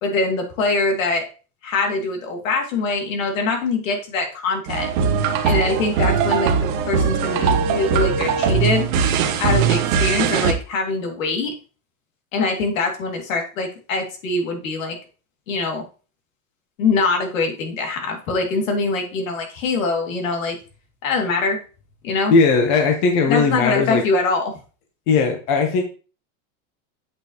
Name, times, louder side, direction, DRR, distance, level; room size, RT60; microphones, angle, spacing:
voice 1, 0.0-1.3 1.6-4.9 5.4-6.5 6.9-8.9 9.4-11.5 12.3-15.0 15.5-15.8 16.8-20.6 21.0-21.6 22.0-22.3 23.3-24.5, left 3 dB, 80° left, 3 dB, 2.8 m, -23 dB
sound 1, 4.7-10.5, right 6 dB, 40° right, 1.0 m, -20 dB
voice 2, 22.3-24.0 25.1-25.8, left 4 dB, 40° left, 4 dB, 1.2 m, -18 dB
8.6 x 6.2 x 3.1 m, 0.36 s
supercardioid pair, 180°, 39 cm